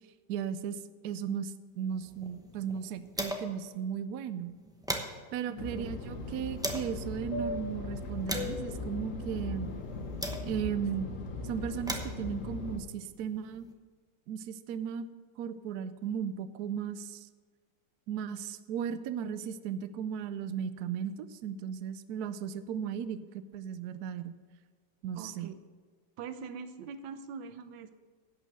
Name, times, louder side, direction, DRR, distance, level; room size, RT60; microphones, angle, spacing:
voice 1, 0.3-0.8 1.0-4.5 5.3-9.7 10.5-11.1 11.4-13.7 14.3-15.1 15.4-17.3 18.1-23.2 23.5-24.4 25.0-25.5, right 8 dB, 70° right, 12 dB, 1.0 m, -36 dB
sound 1, 1.9-3.7 4.0-4.1 4.4-7.0 7.6-10.8 11.5-13.7, equal, 5° right, 0.3 m, -40 dB
voice 2, 5.5-6.0 25.1-25.5 26.2-27.9, right 6 dB, 90° right, 11 dB, 1.5 m, -43 dB
Fixed-wing aircraft airplane, 5.6-12.8, left 3 dB, 50° left, 1.3 m, -38 dB
11.0 x 6.3 x 6.7 m, 1.5 s
omnidirectional pair, 2.0 m